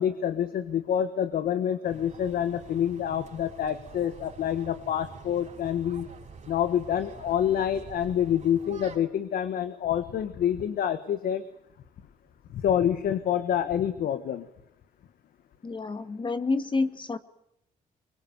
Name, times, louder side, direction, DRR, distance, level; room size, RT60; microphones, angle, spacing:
voice 1, 0.0-6.1 6.5-11.4 12.5-14.5, left 9 dB, 75° left, 11 dB, 1.5 m, -27 dB
sound 1, 1.9-9.0, right 5 dB, 50° right, 5.3 m, -47 dB
voice 2, 15.6-17.2, left 3 dB, 30° left, 11 dB, 2.1 m, -28 dB
24.0 x 23.5 x 9.3 m, 0.79 s
cardioid pair, 80°, 15 cm